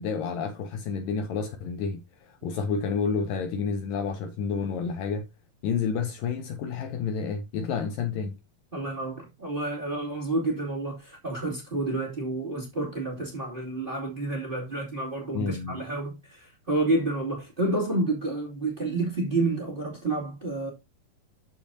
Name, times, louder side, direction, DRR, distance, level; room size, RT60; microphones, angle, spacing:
voice 1, 0.0-5.3 5.6-8.4 15.3-15.8, left 5 dB, 75° left, 2.2 m, -30 dB
voice 2, 8.7-20.7, right 2 dB, 15° right, 2.2 m, -29 dB
13.5 x 5.4 x 2.7 m
omnidirectional pair, 4.5 m